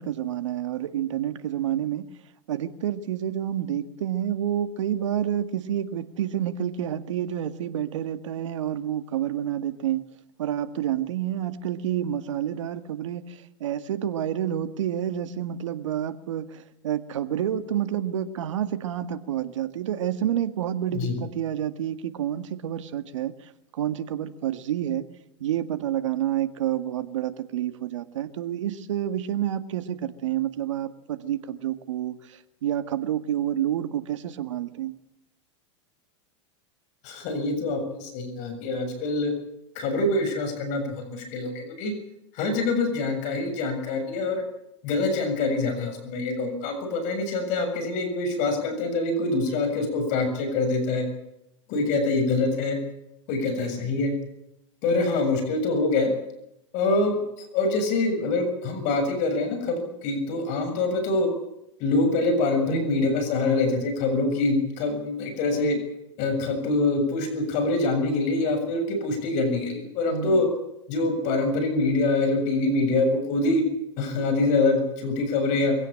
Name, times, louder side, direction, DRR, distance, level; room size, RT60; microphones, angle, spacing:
voice 1, 0.0-2.0 2.5-10.0 10.4-25.0 25.4-35.0 62.7-63.1 65.5-65.8 70.1-70.5, right 11 dB, 80° right, 10 dB, 1.8 m, -29 dB
voice 2, 37.0-39.3 39.8-41.9 42.3-44.4 44.8-51.1 51.7-52.8 53.3-54.1 54.8-56.1 56.7-61.3 61.8-65.7 66.2-70.5 70.9-73.6 74.0-75.7, left 3 dB, 50° left, 7 dB, 7.0 m, -25 dB
23.5 x 17.0 x 8.7 m, 0.84 s
hypercardioid pair, 110°, 16 cm